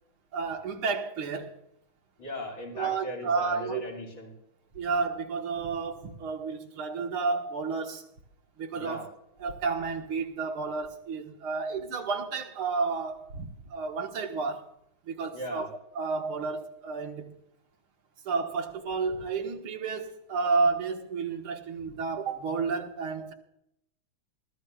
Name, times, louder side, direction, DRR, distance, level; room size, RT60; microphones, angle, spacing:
voice 1, 0.3-1.6 2.8-3.8 4.8-8.1 8.6-9.1 9.4-14.7 15.1-15.7 16.0-17.3 18.3-23.3, right 4 dB, 80° right, 2.3 m, -31 dB
voice 2, 2.2-4.3 8.7-9.0 15.3-15.7, equal, 70° left, 5.7 m, -38 dB
24.0 x 14.0 x 2.4 m
omnidirectional pair, 2.3 m